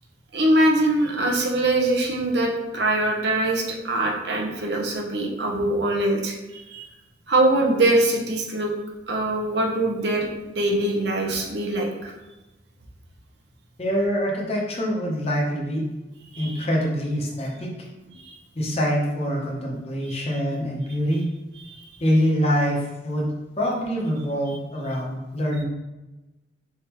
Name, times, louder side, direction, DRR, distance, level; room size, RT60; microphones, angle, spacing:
voice 1, 0.3-6.8 7.3-8.7 9.1-12.1 16.3-16.7 18.1-18.3 20.1-20.2 21.7-21.8, right 1 dB, 65° right, 1 dB, 0.8 m, -23 dB
voice 2, 13.8-15.8 16.4-17.7 18.6-21.2 22.0-25.6, equal, 30° left, -2 dB, 0.8 m, -25 dB
4.7 x 3.5 x 3.0 m, 1.1 s
head